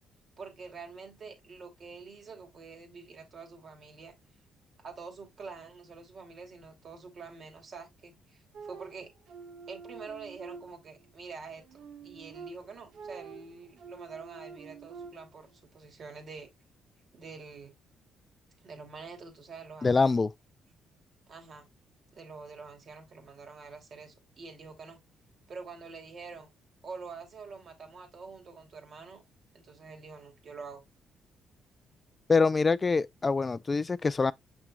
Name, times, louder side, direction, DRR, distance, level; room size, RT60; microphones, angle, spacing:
voice 1, 0.4-4.1 4.8-9.1 9.7-16.5 17.1-17.8 18.6-20.1 21.3-21.7 22.1-25.0 25.5-26.5 26.8-29.2 29.5-30.8, right 4 dB, 55° right, 2.9 m, -46 dB
sound 1, 8.5-11.1 11.5-15.5, right 5 dB, 75° right, 1.4 m, -47 dB
voice 2, 19.8-20.3 32.3-34.3, left 4 dB, 30° left, 0.4 m, -25 dB
7.5 x 6.0 x 2.3 m
cardioid pair, 90°, 0 cm